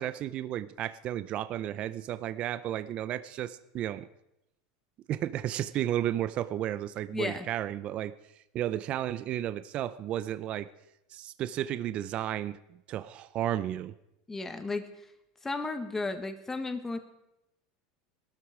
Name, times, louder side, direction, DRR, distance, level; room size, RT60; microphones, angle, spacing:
voice 1, 0.0-4.1 5.1-8.1 8.5-10.7 11.1-12.6 12.9-13.9, right 12 dB, 40° right, 14 dB, 0.6 m, -33 dB
voice 2, 7.1-7.5 14.3-14.9 15.4-17.0, left 3 dB, 10° left, 8 dB, 1.5 m, -34 dB
19.5 x 13.0 x 5.0 m, 0.88 s
supercardioid pair, 135°, 3 cm